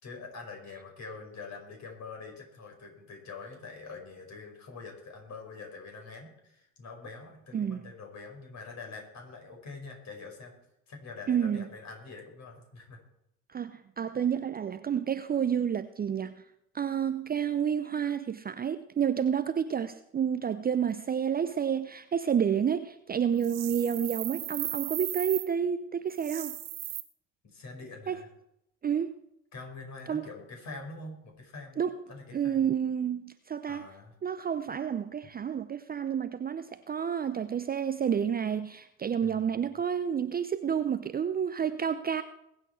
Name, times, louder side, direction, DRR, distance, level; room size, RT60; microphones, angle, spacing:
voice 1, 0.0-10.6 10.9-13.0 27.4-28.3 29.5-31.8 32.1-32.6 33.7-34.1 39.2-39.7, left 4 dB, 40° left, 5.0 m, -45 dB
voice 2, 7.5-7.9 11.3-11.6 13.5-16.4 16.7-26.6 28.1-28.2 28.8-29.2 30.1-30.3 31.8-31.9 32.3-33.9 34.2-42.2, right 8 dB, 20° right, 0.6 m, -30 dB
sound 1, 23.4-25.5 26.1-27.0, right 13 dB, 80° right, 1.1 m, -36 dB
21.0 x 8.6 x 4.6 m
hypercardioid pair, 70°, 41 cm